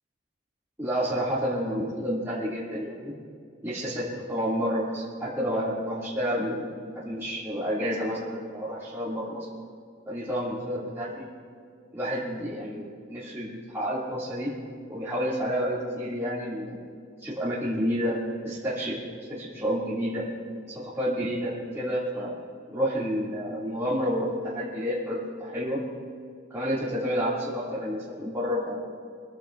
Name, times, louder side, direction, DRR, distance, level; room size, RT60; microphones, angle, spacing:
voice 1, 0.8-3.1 3.6-9.5 10.1-11.2 11.9-14.5 14.9-16.8 17.2-18.2 18.4-19.0 19.3-20.2 20.7-22.3 22.7-25.8 26.5-28.8, equal, 15° right, -10 dB, 2.4 m, -30 dB
24.5 x 15.5 x 2.6 m, 2.3 s
head